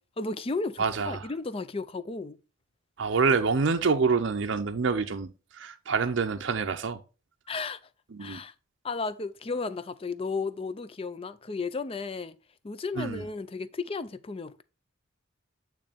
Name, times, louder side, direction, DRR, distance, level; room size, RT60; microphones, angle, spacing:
voice 1, 0.0-2.4 7.5-7.8 8.2-8.5 8.8-12.3 12.6-14.6, left 4 dB, 25° left, 0.4 m, -34 dB
voice 2, 0.8-1.3 3.0-5.3 5.6-7.0 8.1-8.4 13.0-13.2, right 5 dB, 60° right, 0.5 m, -26 dB
8.8 x 3.1 x 5.0 m
head